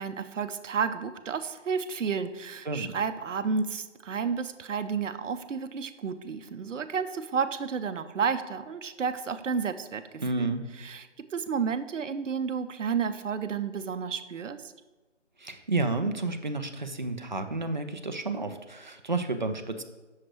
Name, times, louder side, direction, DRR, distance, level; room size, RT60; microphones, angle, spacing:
voice 1, 0.0-10.5 10.8-14.6, right 6 dB, 80° right, 11 dB, 0.6 m, -31 dB
voice 2, 10.2-10.7 15.4-19.8, right 3 dB, 40° right, 7 dB, 0.4 m, -31 dB
7.6 x 6.4 x 3.1 m, 1.2 s
figure-of-eight pair, 170°, 37 cm